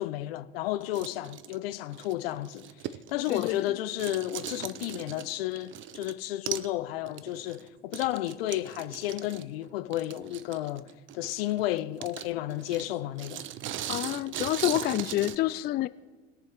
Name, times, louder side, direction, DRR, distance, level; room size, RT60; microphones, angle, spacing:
voice 1, 0.0-2.7 3.1-13.5, left 14 dB, 70° left, 0.6 m, -32 dB
sound 1, 0.8-3.7 4.0-6.1 6.5-6.7 7.1-15.4, right 12 dB, 40° right, 0.7 m, -39 dB
voice 2, 3.3-3.7 13.9-15.9, left 15 dB, 35° left, 0.4 m, -28 dB
20.5 x 7.0 x 4.5 m
hypercardioid pair, 70°, 31 cm